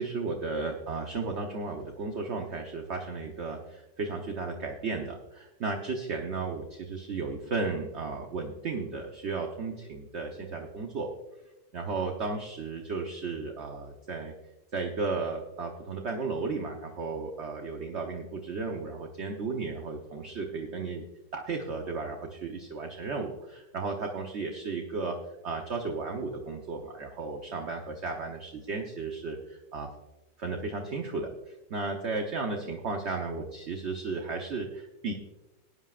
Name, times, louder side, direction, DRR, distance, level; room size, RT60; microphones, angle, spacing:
voice 1, 0.0-11.1 11.7-14.3 14.7-21.0 21.3-25.2 25.4-29.9 30.4-35.1, right 4 dB, 45° right, 2 dB, 1.1 m, -34 dB
18.5 x 9.9 x 2.5 m, 1.0 s
omnidirectional pair, 1.9 m